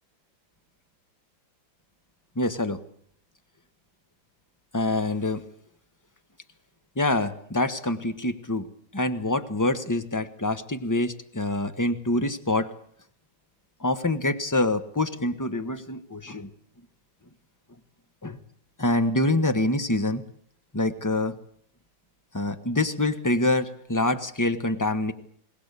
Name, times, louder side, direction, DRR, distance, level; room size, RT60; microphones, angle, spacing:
voice 1, 2.3-2.8 4.7-5.4 7.0-8.7 8.9-12.7 13.8-16.5 18.2-18.4 18.8-20.2 20.7-21.4 22.3-25.1, left 2 dB, 10° left, 10 dB, 1.0 m, -26 dB
22.0 x 19.0 x 8.3 m, 0.63 s
omnidirectional pair, 2.1 m